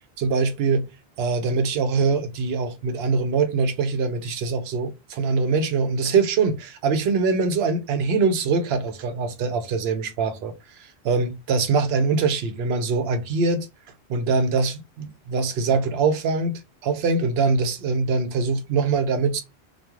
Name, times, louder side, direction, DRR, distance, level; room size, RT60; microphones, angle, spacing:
voice 1, 0.2-0.9 1.2-10.5 10.8-13.7 14.1-19.4, right 4 dB, 70° right, 0.8 m, -23 dB
2.3 x 2.2 x 2.9 m
omnidirectional pair, 1.1 m